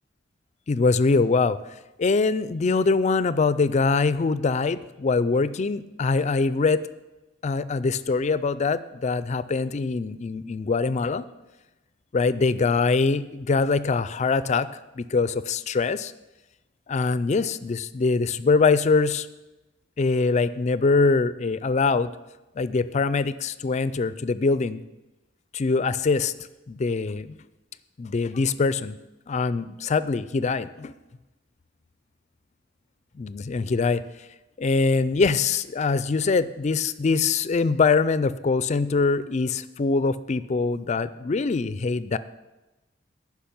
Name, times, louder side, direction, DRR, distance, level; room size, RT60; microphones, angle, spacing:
voice 1, 0.7-1.6 2.0-6.8 7.4-11.2 12.1-14.7 15.0-16.1 16.9-19.3 20.0-22.1 22.6-24.8 25.5-26.3 26.7-27.3 28.0-28.9 29.3-30.9 33.2-34.0 34.6-42.2, left 4 dB, 40° left, 15 dB, 0.4 m, -23 dB
10.0 x 6.0 x 8.6 m, 1.0 s
head